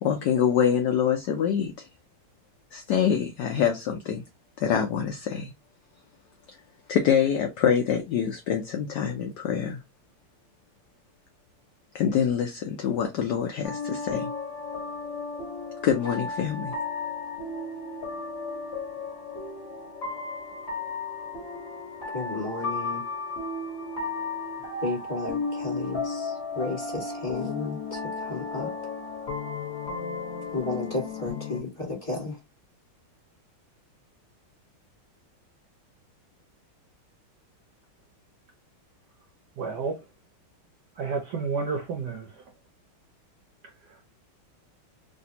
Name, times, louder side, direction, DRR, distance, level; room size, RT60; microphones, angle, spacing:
voice 1, 0.0-1.9 2.7-4.2 4.6-5.5 6.9-9.8 11.9-14.3 15.8-16.7, left 8 dB, 75° left, 0.9 m, -25 dB
sound 1, 13.6-31.6, left 4 dB, 40° left, 1.2 m, -34 dB
voice 2, 22.1-23.0 24.8-28.7 30.5-32.4, left 3 dB, 15° left, 1.5 m, -33 dB
voice 3, 39.6-40.0 41.0-42.3, right 4 dB, 70° right, 1.0 m, -30 dB
3.3 x 2.6 x 2.7 m
omnidirectional pair, 2.3 m